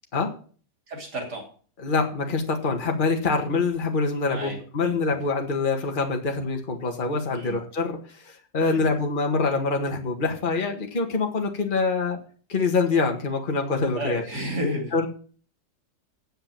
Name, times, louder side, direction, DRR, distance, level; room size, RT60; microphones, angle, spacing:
voice 1, 0.9-1.5 4.3-5.2 7.3-7.6 8.6-8.9 14.0-15.0, equal, 70° right, 1 dB, 3.5 m, -32 dB
voice 2, 1.8-12.2 12.5-14.2 14.9-15.1, left 4 dB, 30° left, 3 dB, 1.8 m, -25 dB
9.0 x 7.8 x 8.9 m, 0.43 s
omnidirectional pair, 1.8 m